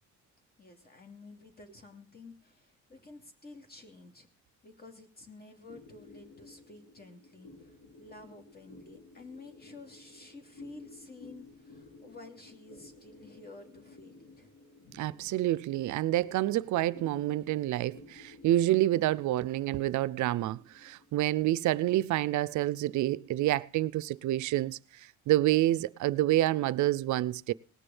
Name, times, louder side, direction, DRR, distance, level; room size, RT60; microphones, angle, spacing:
voice 1, 0.6-4.3 4.6-14.5, left 3 dB, 30° left, 2.7 m, -51 dB
sound 1, 5.7-24.4, left 2 dB, 90° left, 3.8 m, -55 dB
voice 2, 14.9-24.8 25.3-27.5, right 15 dB, 75° right, 0.5 m, -28 dB
18.5 x 6.8 x 7.1 m
cardioid pair, 90°, 30 cm